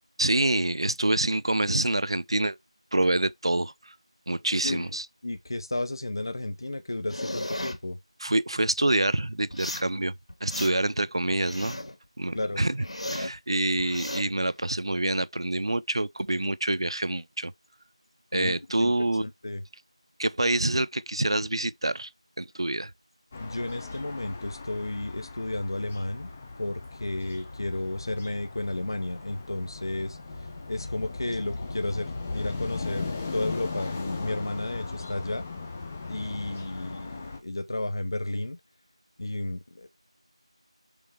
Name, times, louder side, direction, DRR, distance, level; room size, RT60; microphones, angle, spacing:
voice 1, 0.2-2.6 2.9-3.7 4.3-5.0 8.2-10.1 10.4-11.8 12.2-12.8 13.1-17.5 18.3-19.2 20.2-22.1 22.4-22.9, right 2 dB, 50° right, 0.7 m, -26 dB
voice 2, 4.6-8.0 12.3-12.6 13.9-14.0 18.3-18.9 19.2-19.6 23.4-26.3 26.6-30.2 30.7-35.4 36.1-38.6 39.2-39.9, left 2 dB, 40° left, 0.8 m, -33 dB
sound 1, 7.1-7.8 9.5-9.9 10.3-11.0 11.3-12.0 12.3-13.4 13.8-14.2, left 1 dB, 70° left, 2.5 m, -35 dB
sound 2, 23.3-37.4, left 3 dB, 10° left, 0.5 m, -38 dB
6.9 x 4.3 x 5.0 m
figure-of-eight pair, 175°, 3 cm